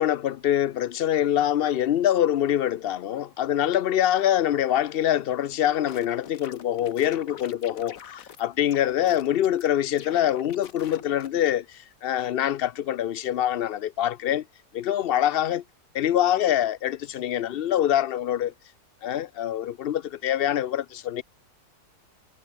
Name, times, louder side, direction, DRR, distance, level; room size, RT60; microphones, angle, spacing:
voice 1, 0.0-14.4 14.7-15.6 15.9-18.5 19.0-21.2, left 11 dB, 85° left, 0.5 m, -25 dB
sound 1, 5.6-8.4 8.7-9.7 10.0-11.3, left 8 dB, 60° left, 1.5 m, -44 dB
omnidirectional pair, 1.7 m